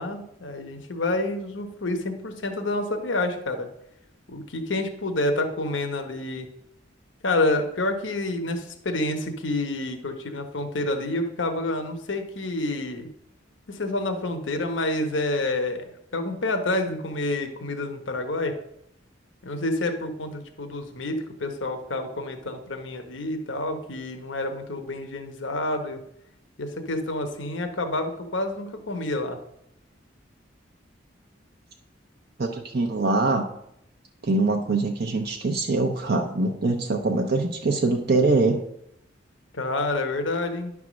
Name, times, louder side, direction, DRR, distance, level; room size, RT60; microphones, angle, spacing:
voice 1, 0.0-3.7 4.3-6.5 7.2-13.1 13.7-15.8 16.1-18.5 19.4-26.0 26.6-29.4 39.5-40.7, left 2 dB, 80° left, 5 dB, 1.0 m, -28 dB
voice 2, 32.4-33.4 34.2-38.6, right 3 dB, 55° right, 2 dB, 0.8 m, -23 dB
10.5 x 3.6 x 6.1 m, 0.76 s
head